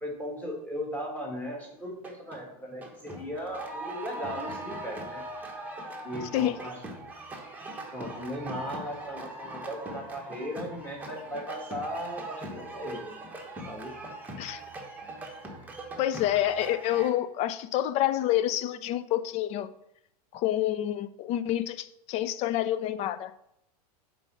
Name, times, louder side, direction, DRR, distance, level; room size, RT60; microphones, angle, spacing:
voice 1, 0.0-5.2 6.0-6.7 7.9-13.1 13.6-14.0, equal, 5° left, -1 dB, 1.9 m, -37 dB
sound 1, 1.9-2.4 2.8-17.1, right 2 dB, 10° right, 1.1 m, -41 dB
voice 2, 16.0-19.7 20.3-23.3, left 12 dB, 35° left, 13 dB, 0.4 m, -28 dB
5.3 x 4.5 x 6.0 m, 0.78 s
hypercardioid pair, 130°, 20 cm